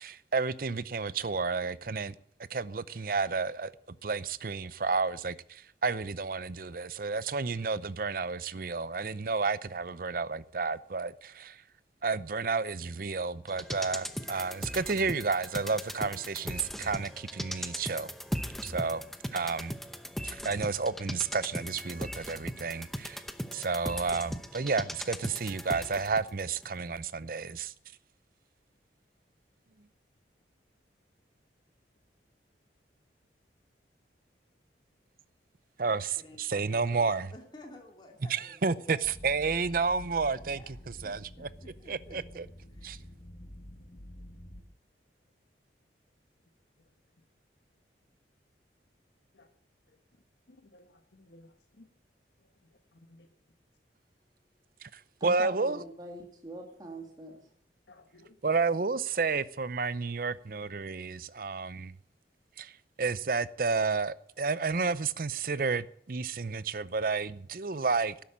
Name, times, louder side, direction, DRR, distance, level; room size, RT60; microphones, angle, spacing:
voice 1, 0.0-2.2 2.5-3.7 4.0-11.6 12.0-18.1 18.6-19.0 19.3-19.7 20.2-23.2 23.5-27.7 35.8-37.3 38.3-40.8 41.0-41.5 41.9-42.5 42.8-43.0 54.8-55.8 58.4-61.9 62.6-68.2, right 4 dB, 50° right, 0.6 m, -31 dB
sound 1, 13.5-26.3 26.6-26.7, equal, ahead, 0.8 m, -39 dB
voice 2, 36.1-39.1 40.4-42.2 42.7-43.1, left 1 dB, 25° left, 2.7 m, -53 dB
sound 2, 39.0-44.6, equal, 45° left, 1.6 m, -48 dB
voice 3, 50.5-51.9 52.4-53.3 57.9-58.9, left 1 dB, 85° left, 1.2 m, -59 dB
voice 4, 55.2-57.4, right 1 dB, 25° right, 2.3 m, -43 dB
12.5 x 10.5 x 8.7 m
head